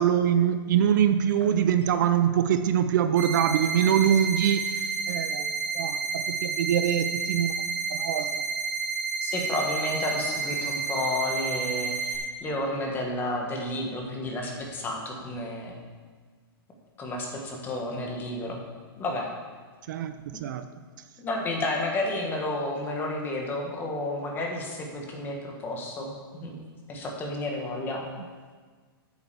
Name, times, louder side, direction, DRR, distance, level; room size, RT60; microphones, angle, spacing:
voice 1, 0.0-4.7 5.1-7.5 7.9-8.4 19.9-20.1 20.4-20.7, right 9 dB, 50° right, 9 dB, 0.6 m, -24 dB
sound 1, 3.2-12.2, right 4 dB, 20° right, 2.1 m, -30 dB
voice 2, 9.2-15.8 17.0-18.6 19.0-19.3 20.3-20.4 21.2-26.6 26.9-28.0, left 1 dB, 15° left, 0 dB, 1.6 m, -31 dB
9.0 x 7.0 x 6.8 m, 1.5 s
hypercardioid pair, 155°, 13 cm